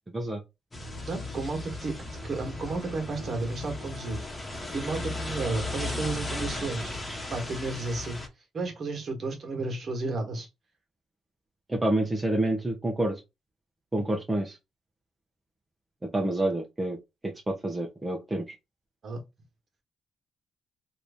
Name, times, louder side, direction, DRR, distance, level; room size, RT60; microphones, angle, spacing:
sound 1, 0.7-8.3, left 2 dB, 15° left, 1.2 m, -36 dB
voice 1, 1.0-4.2 4.7-6.9 7.3-8.2 8.5-10.5 19.0-19.2, right 3 dB, 45° right, 1.4 m, -32 dB
voice 2, 11.7-13.2 13.9-14.6 16.1-17.0 17.2-18.4, right 1 dB, 15° right, 0.7 m, -28 dB
3.0 x 2.6 x 3.4 m
cardioid pair, 90°, 0 cm